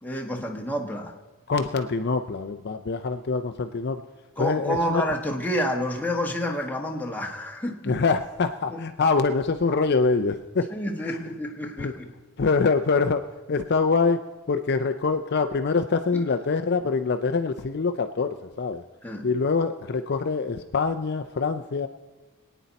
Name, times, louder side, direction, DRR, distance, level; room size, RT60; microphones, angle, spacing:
voice 1, 0.0-1.1 4.4-8.0 8.7-8.8 10.7-12.1 16.1-16.3 19.0-19.3, equal, 10° left, 1 dB, 1.3 m, -29 dB
voice 2, 1.5-4.0 4.4-5.0 7.8-10.7 11.0-11.2 11.8-11.9 12.4-14.2 14.5-18.8 19.2-21.9, left 4 dB, 50° left, 8 dB, 0.5 m, -24 dB
24.0 x 9.2 x 4.1 m, 1.2 s
head